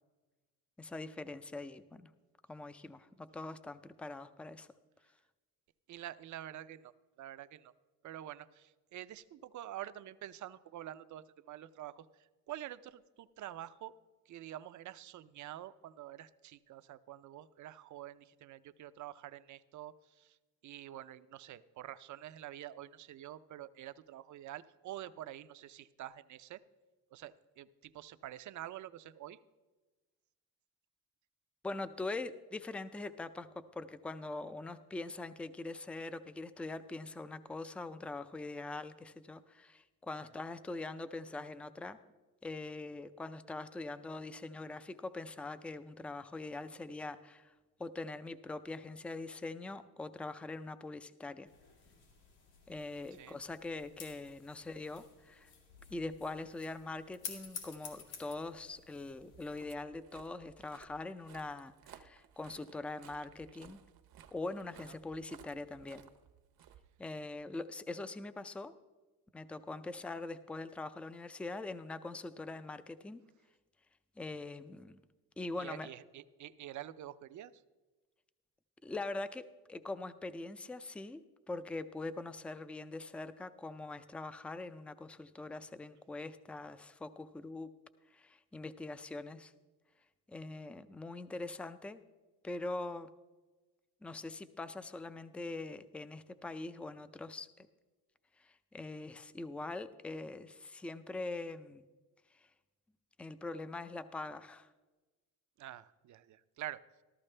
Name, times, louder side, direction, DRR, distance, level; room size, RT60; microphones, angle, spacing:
voice 1, 0.8-2.1 2.5-4.7 31.6-33.5 33.7-42.0 42.4-47.5 47.8-51.5 52.7-55.5 55.9-63.8 64.3-66.1 67.0-68.7 69.3-73.2 74.2-75.0 75.4-75.9 78.8-79.4 79.7-81.2 81.5-87.7 88.1-89.5 90.3-92.0 92.4-93.1 94.0-97.7 98.4-101.8 103.2-104.7, left 2 dB, 5° left, 13 dB, 0.3 m, -43 dB
voice 2, 5.9-6.9 7.2-7.7 8.0-13.9 14.3-20.4 20.6-26.6 27.1-29.4 53.2-53.4 64.9-65.0 75.6-77.5 105.6-106.8, right 12 dB, 50° right, 14 dB, 0.5 m, -47 dB
sound 1, 51.5-59.6, left 6 dB, 85° left, 2.4 m, -52 dB
Walk footsteps, 59.2-67.4, right 9 dB, 65° right, 0.9 m, -59 dB
14.0 x 13.5 x 3.3 m, 1.2 s
cardioid pair, 125°, 38 cm